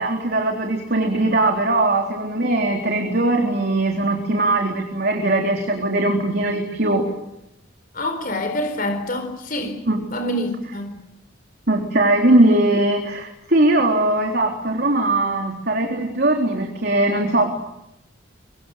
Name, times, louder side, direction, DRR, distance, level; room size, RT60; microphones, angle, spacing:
voice 1, 0.0-7.1 9.9-10.0 11.7-17.5, right 2 dB, 55° right, 3.7 m, -20 dB
voice 2, 7.9-9.8 10.1-11.0, left 1 dB, 45° left, 4.4 m, -26 dB
24.5 x 24.5 x 9.3 m
head